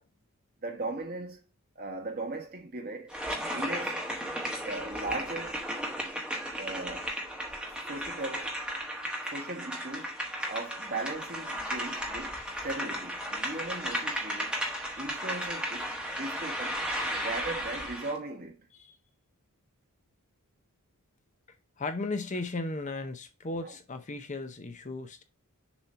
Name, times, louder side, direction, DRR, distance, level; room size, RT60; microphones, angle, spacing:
voice 1, 0.6-1.4 1.7-3.2 3.4-4.0 4.6-5.6 6.6-7.2 7.8-8.6 9.2-10.1 10.5-14.5 14.9-15.9 16.2-16.8 17.1-18.7 23.6-23.8, right 2 dB, 45° right, 1.7 m, -38 dB
sound 1, 3.1-18.2, equal, 5° right, 1.1 m, -35 dB
voice 2, 21.8-25.2, left 2 dB, 35° left, 0.7 m, -35 dB
7.0 x 3.0 x 5.5 m
head